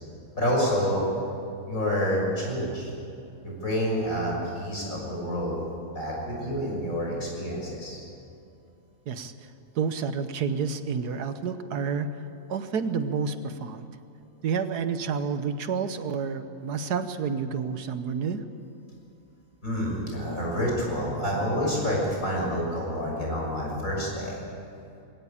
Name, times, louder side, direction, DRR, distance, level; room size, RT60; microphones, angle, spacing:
voice 1, 0.3-1.0 1.7-2.9 3.4-5.6 5.9-8.0 19.6-24.4, equal, 55° left, -2 dB, 6.6 m, -28 dB
voice 2, 9.7-12.1 12.5-13.9 14.4-18.4, right 6 dB, 80° right, 10 dB, 1.6 m, -29 dB
22.0 x 17.0 x 8.6 m, 2.7 s
omnidirectional pair, 1.7 m